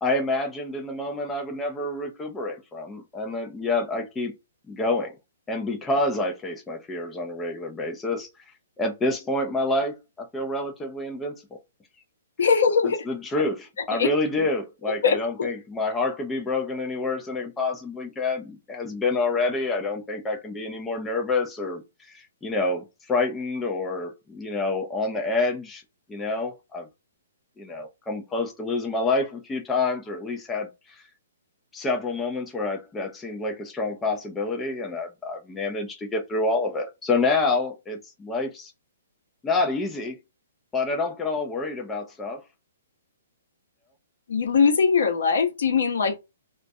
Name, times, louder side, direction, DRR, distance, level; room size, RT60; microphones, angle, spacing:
voice 1, 0.0-4.3 4.7-5.2 5.5-8.3 8.8-11.6 13.1-25.8 26.1-26.9 27.6-31.0 31.7-38.7 39.4-40.2 40.7-42.4, left 3 dB, 10° left, 0.4 m, -28 dB
voice 2, 12.4-13.0 13.9-14.1 14.8-15.5 44.3-46.2, left 5 dB, 75° left, 0.7 m, -21 dB
2.3 x 2.1 x 2.6 m
hypercardioid pair, 155°, 0 cm